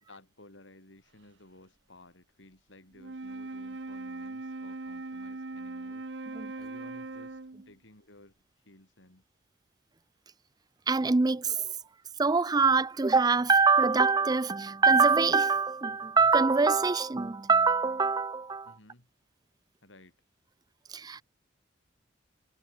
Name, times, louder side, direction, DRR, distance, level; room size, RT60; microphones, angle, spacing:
voice 1, 0.1-9.2 18.6-19.1 19.8-20.2, left 1 dB, 75° left, 6.3 m, -56 dB
Wind instrument woodwind instrument, 2.9-7.7, right 3 dB, 60° right, 0.9 m, -40 dB
voice 2, 10.9-11.7 12.2-18.7 20.9-21.2, right 4 dB, 20° right, 0.4 m, -24 dB
head